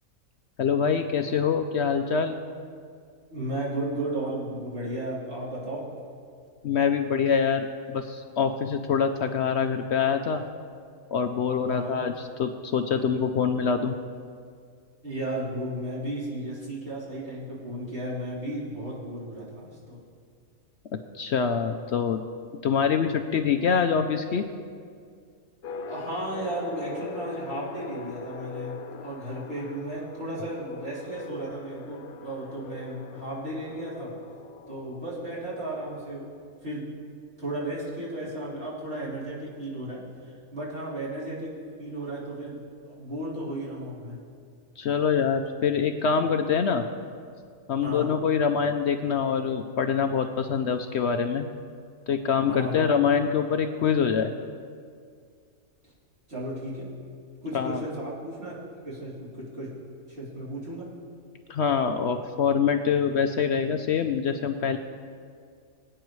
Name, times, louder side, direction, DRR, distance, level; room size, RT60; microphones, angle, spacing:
voice 1, 0.6-2.4 6.6-10.4 11.1-13.9 21.1-22.2 22.6-24.4 44.8-46.8 47.7-51.5 52.1-54.3 57.5-57.8 61.5-64.8, left 6 dB, 65° left, 7 dB, 0.7 m, -25 dB
voice 2, 3.3-5.8 11.7-12.0 15.0-20.0 25.9-34.1 34.7-36.2 36.6-36.9 37.4-41.5 41.8-44.2 47.8-48.1 52.5-52.9 56.3-56.9 57.4-58.6 58.8-59.7 60.1-60.9, right 1 dB, 45° right, -8 dB, 3.6 m, -34 dB
sound 1, 25.6-36.8, left 4 dB, 85° left, 1.2 m, -42 dB
23.0 x 8.9 x 3.1 m, 2.2 s
omnidirectional pair, 1.5 m